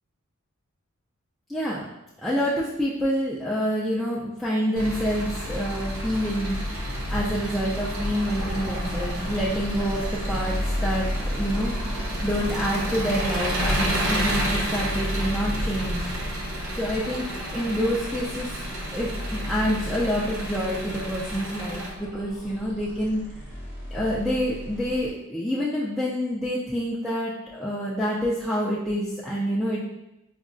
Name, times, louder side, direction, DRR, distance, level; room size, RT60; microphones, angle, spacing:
voice 1, 1.5-1.8 2.2-6.6 7.1-11.1 11.3-11.7 12.2-16.1 16.7-17.3 17.5-18.6 18.9-23.2 23.9-29.8, equal, ahead, -8 dB, 0.4 m, -27 dB
Engine, 4.8-21.9, equal, 85° right, 0.7 m, -30 dB
sound 1, 8.3-25.1, equal, 45° right, 1.1 m, -35 dB
4.9 x 2.2 x 2.5 m, 0.91 s
head